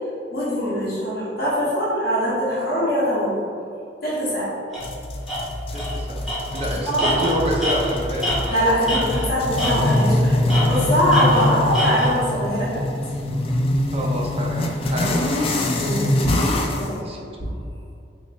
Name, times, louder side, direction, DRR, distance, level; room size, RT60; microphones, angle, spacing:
voice 1, 0.3-3.4 4.0-4.5 6.8-7.1 8.5-12.8 15.8-16.4 16.7-16.9 17.4-17.5, equal, 60° left, -8 dB, 1.0 m, -22 dB
Tools, 4.7-4.9 5.3-5.4 5.7-5.9 6.2-9.3 9.6-10.1 10.5-12.1, left 1 dB, ahead, 1.0 m, -26 dB
sound 1, 4.8-16.9, left 1 dB, 30° left, 0.3 m, -24 dB
voice 2, 5.7-6.2 6.5-8.3 13.9-15.2 16.8-17.3, equal, 35° right, -2 dB, 0.6 m, -27 dB
4.1 x 2.8 x 2.7 m, 2.5 s
head